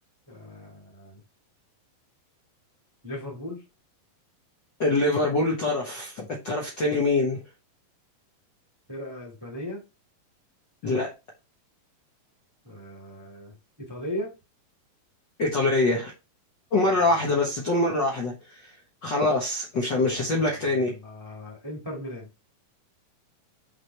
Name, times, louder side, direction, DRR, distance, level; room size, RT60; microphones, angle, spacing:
voice 1, 0.3-1.2 3.0-3.6 8.9-9.8 12.6-14.3 16.9-17.1 20.0-22.3, left 1 dB, 15° right, 0.8 m, -38 dB
voice 2, 4.8-7.4 10.8-11.1 15.4-16.1 16.7-18.7 19.0-21.0, left 2 dB, 90° left, 0.9 m, -24 dB
6.1 x 5.0 x 3.4 m
omnidirectional pair, 4.1 m